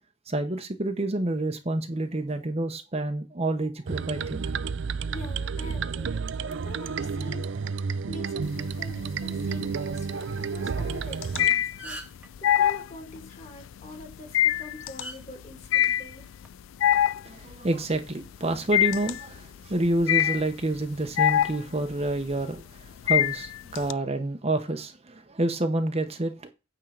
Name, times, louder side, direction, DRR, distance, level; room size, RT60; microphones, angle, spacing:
voice 1, 0.3-4.4 17.2-26.5, right 2 dB, 30° right, 0.9 m, -28 dB
sound 1, 3.9-11.5, right 5 dB, 65° right, 0.4 m, -31 dB
voice 2, 5.1-7.6 7.9-12.0 12.4-16.3, left 2 dB, 35° left, 2.5 m, -44 dB
sound 2, 8.4-9.1 9.4-23.9, left 11 dB, 80° left, 0.4 m, -25 dB
sound 3, 11.3-11.4 11.6-12.3 13.9-14.1 15.0-15.2 16.2-16.5, right 1 dB, 5° right, 1.5 m, -39 dB
9.1 x 3.8 x 6.4 m
head